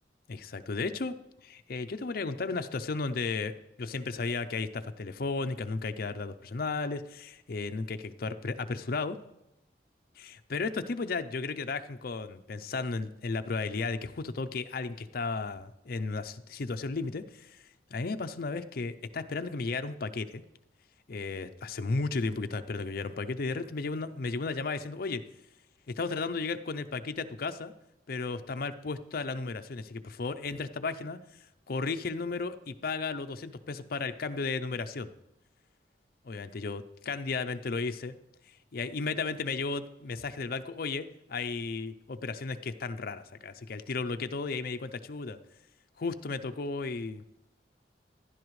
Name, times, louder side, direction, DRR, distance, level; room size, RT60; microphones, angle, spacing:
voice 1, 0.3-1.1 1.4-3.5 3.8-9.2 10.5-20.4 21.1-25.2 25.9-27.7 28.1-31.2 31.7-35.1 36.2-38.2 38.5-45.4 46.0-47.2, left 4 dB, 55° left, 9 dB, 0.5 m, -34 dB
15.5 x 10.5 x 3.2 m, 0.87 s
head